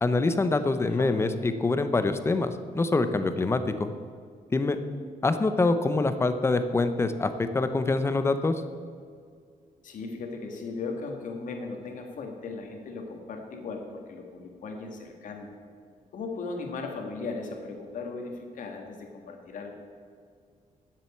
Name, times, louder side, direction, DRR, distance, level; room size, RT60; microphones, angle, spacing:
voice 1, 0.0-3.9 4.5-4.8 5.2-8.6, left 3 dB, 20° left, 10 dB, 0.6 m, -25 dB
voice 2, 9.8-15.5 16.1-19.7, left 4 dB, 65° left, 3 dB, 1.9 m, -37 dB
10.5 x 7.5 x 8.3 m, 2.1 s
wide cardioid pair, 175°, 14 cm